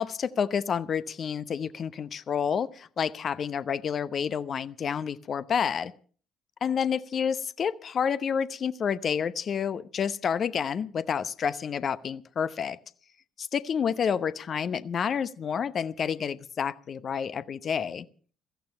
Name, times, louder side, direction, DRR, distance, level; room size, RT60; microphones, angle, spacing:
voice 1, 0.0-5.9 6.6-12.8 13.4-18.0, left 7 dB, 45° left, 15 dB, 0.8 m, -29 dB
16.5 x 15.0 x 5.5 m, 0.43 s
figure-of-eight pair, 45°, 0 cm